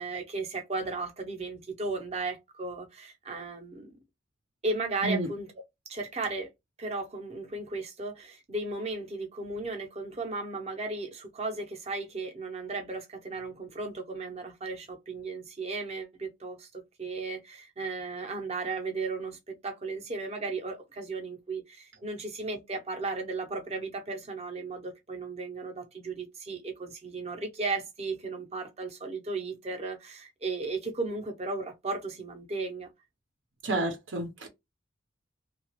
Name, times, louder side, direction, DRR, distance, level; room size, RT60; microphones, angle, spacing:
voice 1, 0.0-4.0 4.6-5.5 5.9-6.5 6.8-16.7 17.0-32.9, right 3 dB, 30° right, 0.7 m, -35 dB
voice 2, 33.6-34.5, right 2 dB, 75° right, 0.8 m, -30 dB
2.8 x 2.4 x 2.8 m
head